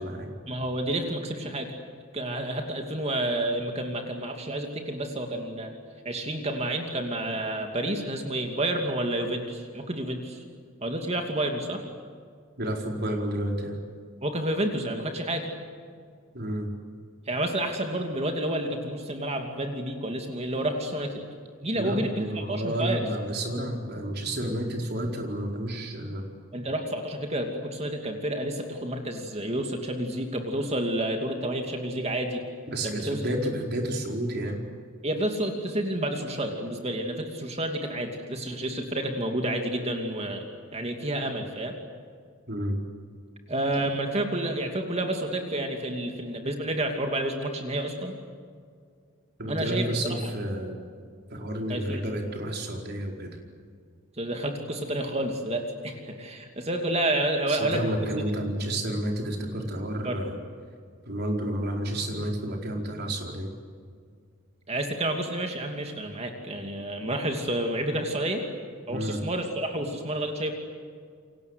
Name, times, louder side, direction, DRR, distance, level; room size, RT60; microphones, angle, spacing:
voice 1, 0.5-1.7 2.1-5.7 6.0-10.4 10.8-11.8 14.2-15.5 17.3-21.2 21.6-23.0 26.5-32.4 32.8-33.2 35.0-40.4 40.7-41.7 43.5-48.1 49.5-49.9 51.7-52.0 54.2-57.9 60.0-60.2 64.7-68.4 68.9-70.5, right 1 dB, 30° right, 3 dB, 2.7 m, -30 dB
voice 2, 12.6-13.8 16.3-16.7 21.7-26.2 32.7-34.6 42.5-42.8 49.4-50.8 51.3-53.3 57.5-60.4 61.1-63.5 68.9-69.2, right 1 dB, 50° right, 1 dB, 4.8 m, -30 dB
29.5 x 24.5 x 8.2 m, 2.1 s
head